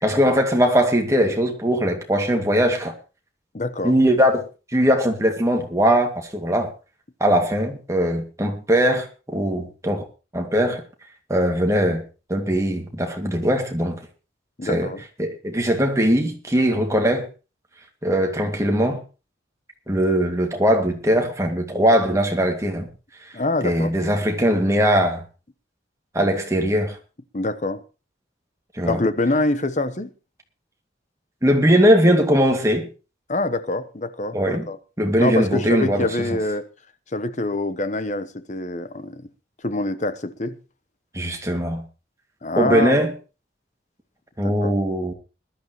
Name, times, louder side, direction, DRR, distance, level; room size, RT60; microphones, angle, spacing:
voice 1, 0.0-2.9 3.8-4.4 4.7-6.7 7.2-10.0 10.3-10.8 11.3-12.0 12.3-14.0 14.6-14.9 15.2-17.3 18.0-19.0 19.9-22.9 23.6-25.2 26.1-27.0 28.7-29.0 31.4-32.9 34.3-34.7 35.0-36.1 41.1-41.8 42.6-43.1 44.4-45.1, equal, 15° right, 2.3 m, -20 dB
voice 2, 3.5-3.9 14.6-15.0 23.3-24.0 27.3-27.8 28.8-30.1 33.3-34.8 35.2-36.7 37.1-39.3 39.6-40.6 42.4-43.0 44.4-44.7, left 2 dB, 40° left, 1.0 m, -25 dB
20.5 x 12.0 x 3.1 m
head